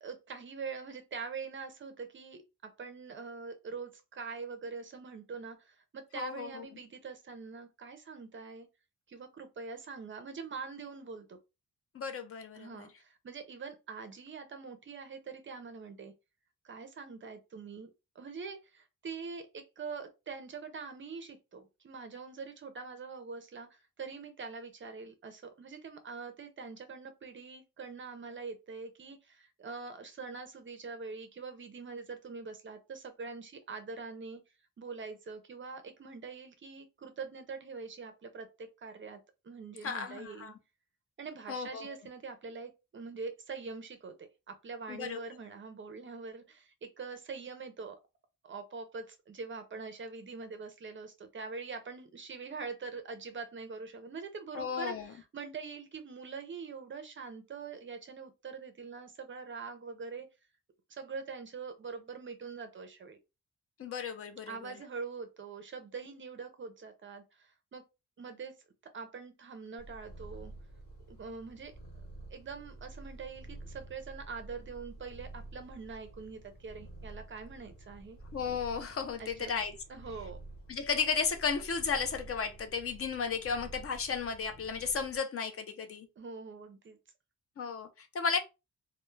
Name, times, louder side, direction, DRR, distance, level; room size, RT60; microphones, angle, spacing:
voice 1, 0.0-8.7 9.1-11.4 12.6-16.1 16.6-17.9 18.2-34.4 34.8-40.5 41.2-48.0 48.4-60.3 60.9-63.2 64.5-67.8 68.2-68.5 68.9-70.5 71.1-71.7 72.3-78.2 79.2-79.5 79.9-80.4 86.2-87.0, right 4 dB, 40° right, 0.4 m, -44 dB
voice 2, 6.1-6.7 11.9-12.9 39.8-40.5 41.5-42.0 44.9-45.2 54.5-55.1 63.8-64.7 78.3-79.7 80.7-86.1 87.6-88.4, left 5 dB, 45° left, 0.4 m, -34 dB
Purr, 69.8-85.2, right 2 dB, 80° left, 1.1 m, -50 dB
2.2 x 2.0 x 3.1 m
wide cardioid pair, 145°, 33 cm